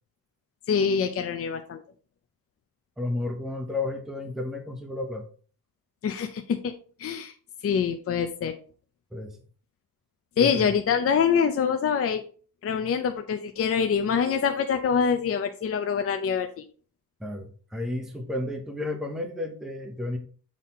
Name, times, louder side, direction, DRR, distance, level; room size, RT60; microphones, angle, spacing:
voice 1, 0.7-1.8 6.0-6.7 7.0-7.3 7.6-8.5 10.4-12.2 12.6-16.6, left 6 dB, 40° left, 6 dB, 0.5 m, -25 dB
voice 2, 3.0-5.3 9.1-9.4 10.4-10.7 17.2-20.2, left 2 dB, ahead, 3 dB, 0.8 m, -32 dB
7.4 x 4.1 x 4.2 m, 0.41 s
wide cardioid pair, 175°, 38 cm